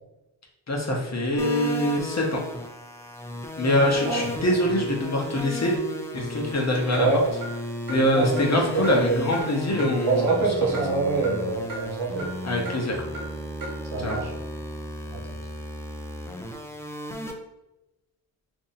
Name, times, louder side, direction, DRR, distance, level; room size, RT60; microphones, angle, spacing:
voice 1, 0.7-2.4 3.6-5.7 6.1-7.1 7.9-10.3 12.4-13.0 14.0-14.2, left 1 dB, 35° left, 0 dB, 0.7 m, -24 dB
sound 1, 1.4-17.3, left 1 dB, 5° left, 0.4 m, -35 dB
Clock, 6.9-7.0 7.4-7.5 7.9-8.0 8.4-8.5 8.8-9.0 9.3-9.4 9.8-9.9 10.3-10.4 10.7-10.9 11.2-11.3 11.7-11.8 12.2-12.3 12.7-12.8 13.1-13.3 13.6-13.7 14.1-14.2, right 1 dB, 40° right, 1.3 m, -35 dB
voice 2, 8.1-8.7 9.0-9.2 10.1-12.3 13.9-14.3 15.1-15.2, right 3 dB, 70° right, -1 dB, 1.0 m, -25 dB
2.7 x 2.6 x 4.0 m, 0.96 s
cardioid pair, 80°, 50 cm